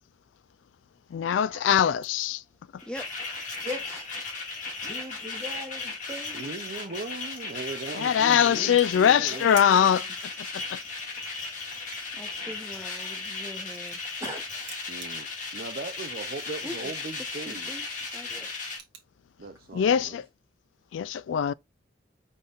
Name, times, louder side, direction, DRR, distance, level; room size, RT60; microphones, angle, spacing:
voice 1, 1.1-2.4 8.0-10.0 10.5-10.8 19.7-20.3 20.9-21.5, left 8 dB, 80° left, 0.3 m, -22 dB
sound 1, 2.0-2.3 2.7-3.7 4.0-4.4 4.8-4.9 5.1-5.7 6.7-6.8 7.1-8.0 8.7-9.8 10.1-10.3 10.6-11.3 11.7-14.3 14.6-16.3 16.5-16.6 17.0-17.2 17.6-19.1, right 7 dB, 70° right, 1.4 m, -49 dB
sound 2, 2.8-18.8, left 4 dB, 40° left, 1.9 m, -36 dB
voice 2, 2.8-3.7 8.3-8.8 12.1-14.0 16.6-16.9 17.4-17.9 18.1-18.5, equal, 5° left, 0.7 m, -43 dB
voice 3, 3.6-4.1 4.8-6.9 8.1-8.7 9.3-10.1 14.2-14.4, left 1 dB, 15° right, 2.2 m, -40 dB
voice 4, 6.3-9.5 14.9-17.7 19.4-20.2, right 3 dB, 50° right, 0.5 m, -38 dB
5.1 x 4.1 x 2.4 m
head